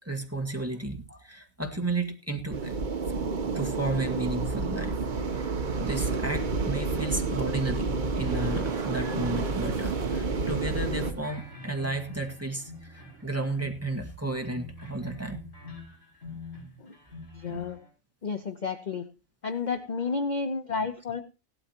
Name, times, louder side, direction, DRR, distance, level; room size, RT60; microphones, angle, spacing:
voice 1, 0.0-2.7 3.5-5.0 5.3-5.5 5.8-15.4 17.5-17.7, right 2 dB, 10° right, 3 dB, 1.7 m, -33 dB
sound 1, 2.5-11.1, right 4 dB, 40° right, 0.9 m, -30 dB
sound 2, 8.0-13.7, right 2 dB, 65° right, 1.9 m, -44 dB
sound 3, 8.4-10.6 10.9-13.3 13.5-17.9, left 3 dB, 55° left, 7.0 m, -45 dB
voice 2, 17.3-17.8 18.2-19.1 19.4-21.2, left 4 dB, 40° left, 9 dB, 0.8 m, -31 dB
16.5 x 12.5 x 2.9 m, 0.31 s
omnidirectional pair, 1.4 m